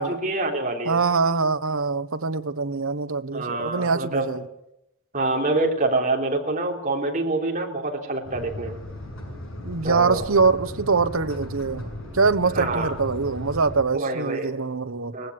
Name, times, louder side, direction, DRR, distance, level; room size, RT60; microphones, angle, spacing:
voice 1, 0.0-1.0 3.3-4.3 5.1-8.8 9.8-10.3 12.6-12.9 13.9-14.5 15.1-15.3, right 2 dB, 35° right, 1 dB, 3.5 m, -26 dB
voice 2, 0.9-4.4 9.6-11.9 12.1-15.1, right 4 dB, 75° right, 11 dB, 1.1 m, -23 dB
sound 1, 8.2-13.8, left 1 dB, 70° left, 7.4 m, -36 dB
20.0 x 15.5 x 9.6 m, 0.87 s
head